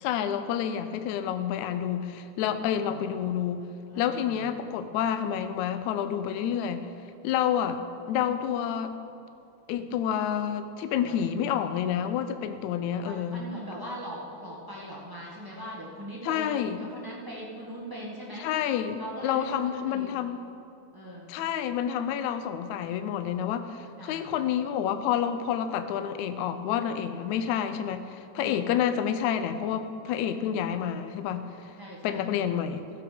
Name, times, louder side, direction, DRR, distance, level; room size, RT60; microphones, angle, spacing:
voice 1, 0.0-3.7 4.0-6.9 7.2-9.0 9.7-13.4 16.2-16.8 18.4-19.0 19.2-20.4 21.3-31.8 32.0-32.9, left 9 dB, 75° left, 10 dB, 1.8 m, -29 dB
voice 2, 2.7-3.0 3.9-4.5 11.0-11.3 13.0-18.5 18.9-20.1 20.9-21.3 24.0-24.3 28.3-28.6 31.8-32.3 32.6-32.7, right 1 dB, 20° right, -5 dB, 0.5 m, -41 dB
15.5 x 7.9 x 5.2 m, 2.6 s
omnidirectional pair, 3.7 m